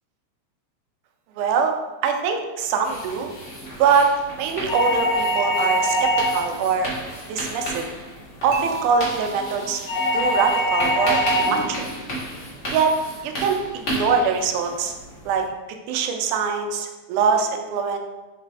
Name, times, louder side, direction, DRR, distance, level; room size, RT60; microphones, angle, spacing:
voice 1, 1.4-1.7 2.0-3.3 3.8-6.9 7.3-7.9 8.4-9.8 10.1-11.9 12.7-13.0 13.2-14.9 15.3-15.4 15.9-18.0, right 6 dB, 90° right, 5 dB, 2.1 m, -23 dB
sound 1, 2.8-15.5, equal, 50° left, 0.9 m, -34 dB
sound 2, 4.7-6.6 9.9-11.7, equal, 80° left, 1.9 m, -22 dB
Dishes pots and pans / Chink clink, 8.5-10.6, right 3 dB, 75° right, 1.5 m, -35 dB
4.9 x 3.2 x 3.4 m, 1.2 s
omnidirectional pair, 3.5 m